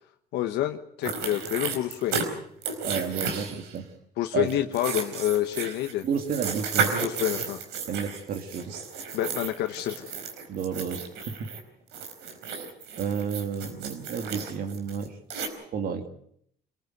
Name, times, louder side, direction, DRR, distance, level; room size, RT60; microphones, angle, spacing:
voice 1, 0.3-2.2 4.2-6.1 7.0-7.6 9.1-10.2, left 13 dB, 85° left, 5 dB, 1.2 m, -28 dB
sound 1, 1.0-2.3 2.6-3.8 4.5-11.6 11.9-15.5, right 5 dB, 90° right, 4.6 m, -33 dB
voice 2, 2.8-3.9 4.3-4.5 6.0-7.0 7.9-8.8 10.5-11.5 13.0-15.2 15.6-16.1, right 6 dB, 60° right, 5 dB, 2.4 m, -31 dB
26.5 x 15.0 x 8.0 m, 0.71 s
cardioid pair, 110°, 17 cm